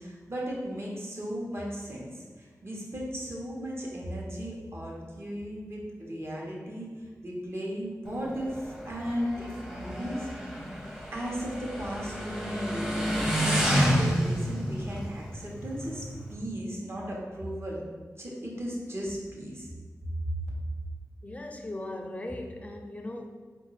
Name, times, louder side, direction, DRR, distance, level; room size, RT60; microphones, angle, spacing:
voice 1, 0.0-10.3 11.1-16.0 16.3-17.8 18.2-19.7 20.2-20.3, equal, 45° right, -3 dB, 1.2 m, -36 dB
Motorcycle, 8.1-16.3, equal, 5° right, 0.8 m, -30 dB
voice 2, 21.2-23.3, left 1 dB, 25° left, 4 dB, 0.5 m, -38 dB
4.7 x 2.6 x 4.1 m, 1.5 s
wide cardioid pair, 70°, 6 cm